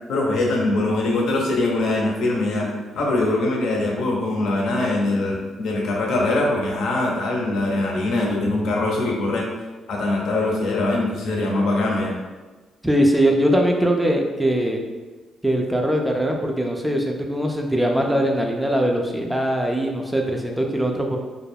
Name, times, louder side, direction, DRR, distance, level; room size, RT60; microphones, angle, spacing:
voice 1, 0.1-2.7 2.9-9.4 9.9-12.1, left 2 dB, 75° left, -2 dB, 0.6 m, -22 dB
voice 2, 12.8-14.8 15.4-21.2, equal, 5° right, 1 dB, 0.3 m, -21 dB
2.3 x 2.1 x 3.2 m, 1.2 s
cardioid pair, 90°, 0 cm